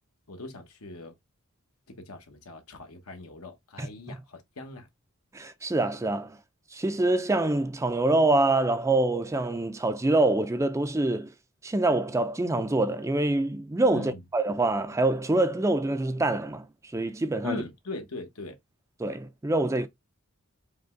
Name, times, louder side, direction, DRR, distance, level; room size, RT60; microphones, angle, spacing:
voice 1, 0.3-1.1 1.9-4.9 13.9-14.2 17.4-18.6, left 3 dB, 85° left, 1.1 m, -40 dB
voice 2, 5.3-6.4 6.7-11.3 11.6-16.7 16.9-17.6 19.0-19.9, right 2 dB, 15° right, 0.3 m, -25 dB
5.1 x 2.2 x 3.7 m
head